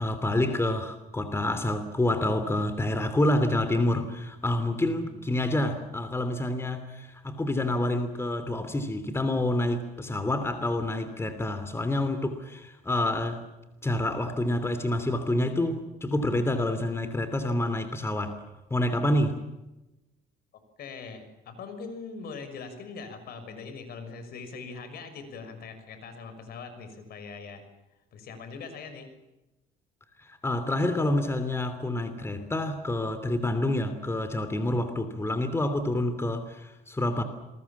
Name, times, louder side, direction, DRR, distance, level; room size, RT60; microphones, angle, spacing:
voice 1, 0.0-13.4 13.8-18.4 18.7-19.4 30.2-37.2, left 1 dB, 15° left, 10 dB, 3.0 m, -28 dB
voice 2, 20.8-27.6 28.1-29.1, left 4 dB, 65° left, 9 dB, 6.2 m, -41 dB
28.0 x 21.5 x 7.4 m, 1.0 s
cardioid pair, 110°, 17 cm